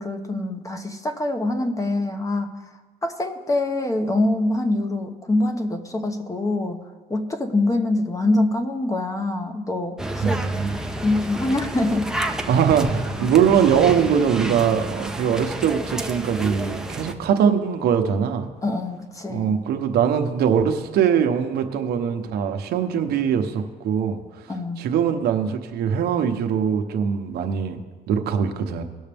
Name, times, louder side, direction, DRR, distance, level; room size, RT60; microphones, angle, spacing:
voice 1, 0.0-2.7 3.0-6.8 7.1-10.4 11.0-12.1 18.6-19.6 24.5-24.8, left 2 dB, 20° left, 6 dB, 1.0 m, -24 dB
sound 1, 10.0-17.1, right 1 dB, 5° right, 0.7 m, -30 dB
voice 2, 10.2-10.8 12.5-18.5 19.3-24.5 24.8-27.8 28.1-28.8, right 7 dB, 70° right, 6 dB, 1.0 m, -22 dB
19.0 x 6.4 x 3.5 m, 1.4 s
cardioid pair, 110°, 17 cm